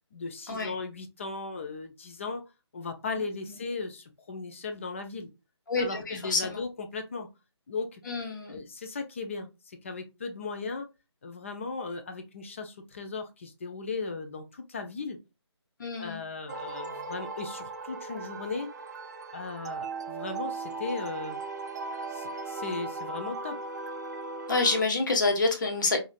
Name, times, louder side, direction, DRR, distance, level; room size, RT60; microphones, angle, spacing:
voice 1, 0.1-2.4 2.7-5.3 5.8-7.3 7.7-8.0 8.4-10.9 11.2-15.2 16.0-18.7 19.3-21.4 22.1-23.6, left 4 dB, 25° left, 7 dB, 0.5 m, -37 dB
voice 2, 5.7-6.6 8.1-8.6 15.8-16.2 24.5-26.0, left 3 dB, 45° left, 4 dB, 1.1 m, -27 dB
sound 1, 16.5-24.8, right 3 dB, 40° right, 0.5 m, -38 dB
4.8 x 2.7 x 2.3 m, 0.26 s
figure-of-eight pair, 150°, 15 cm